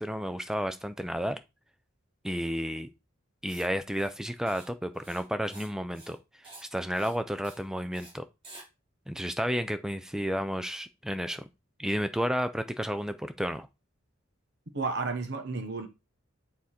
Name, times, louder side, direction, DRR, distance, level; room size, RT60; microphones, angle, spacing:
voice 1, 0.0-1.4 2.2-2.9 3.4-6.2 6.7-8.2 9.1-11.5 11.8-13.7, equal, 5° right, 0.4 m, -31 dB
Writing, 3.4-3.7 3.9-4.1 4.4-4.7 4.9-5.7 5.9-6.2 6.4-6.7 6.9-7.2 7.4-7.6 7.9-8.1 8.4-8.6, right 2 dB, 25° right, 2.6 m, -50 dB
voice 2, 14.7-15.9, right 4 dB, 55° right, 1.1 m, -32 dB
7.3 x 3.8 x 4.3 m
head